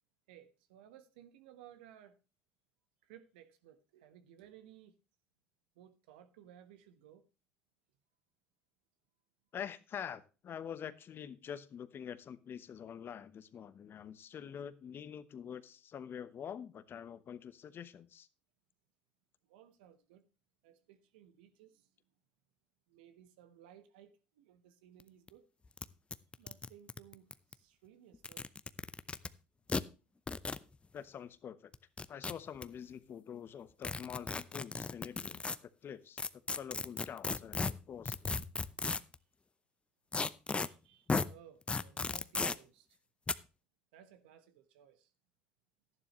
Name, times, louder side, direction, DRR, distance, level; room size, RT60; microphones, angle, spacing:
voice 1, 0.3-2.2 3.0-4.9 5.7-7.2 19.5-20.2 20.6-21.9 22.9-25.5 26.4-28.5 40.6-43.0 43.9-45.1, right 10 dB, 85° right, 1.2 m, -59 dB
voice 2, 9.5-18.3 30.9-31.7 32.1-38.3, left 8 dB, 45° left, 1.1 m, -46 dB
sound 1, 25.0-25.1 25.3-25.4 25.8-25.9 26.1-27.5 28.1-29.3 29.7-29.8 30.3-30.6 31.7-32.6 33.8-35.6 36.2-39.2 40.1-40.7 41.1-41.3 41.7-42.6 43.3-43.4, left 4 dB, 20° left, 0.7 m, -35 dB
12.0 x 11.0 x 3.1 m
hypercardioid pair, 75°, 5 cm